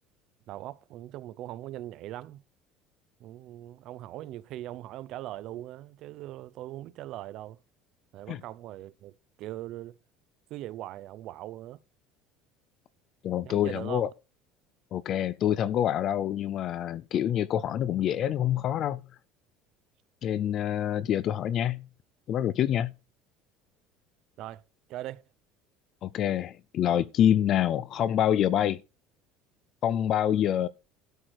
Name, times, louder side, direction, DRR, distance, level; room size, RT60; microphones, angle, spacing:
voice 1, 0.5-2.4 3.2-7.6 8.1-10.0 10.5-11.8 13.4-14.1 24.4-24.6 24.9-25.2, right 14 dB, 50° right, 0.6 m, -40 dB
voice 2, 13.2-14.1 14.9-19.0 20.2-21.8 22.3-22.9 26.0-28.8 29.8-30.7, left 10 dB, 40° left, 0.4 m, -26 dB
12.5 x 4.8 x 6.1 m
cardioid pair, 160°, 0 cm